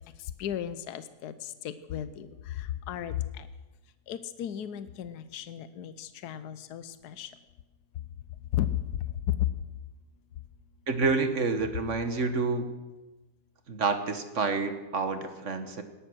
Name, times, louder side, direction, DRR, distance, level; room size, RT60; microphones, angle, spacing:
voice 1, 0.4-3.5 4.1-7.3 8.5-8.7 9.3-9.4, left 11 dB, 80° left, 13 dB, 1.3 m, -35 dB
voice 2, 10.9-12.7 13.7-15.8, right 4 dB, 50° right, 8 dB, 1.6 m, -28 dB
18.5 x 12.5 x 6.2 m, 1.1 s
omnidirectional pair, 1.7 m